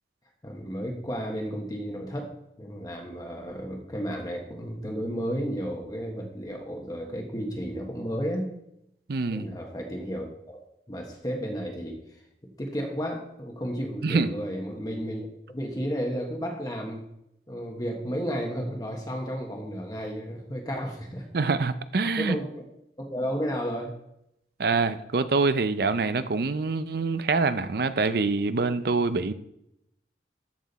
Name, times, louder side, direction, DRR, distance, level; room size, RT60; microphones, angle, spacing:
voice 1, 0.4-2.3 2.6-8.5 9.3-10.6 10.9-17.0 17.5-21.3 22.2-22.5 23.0-23.9, equal, 20° left, 1.2 m, -33 dB
voice 2, 9.1-9.5 14.0-14.3 21.3-22.4 24.6-29.3, right 4 dB, 55° right, 0.5 m, -25 dB
13.5 x 6.1 x 4.1 m
head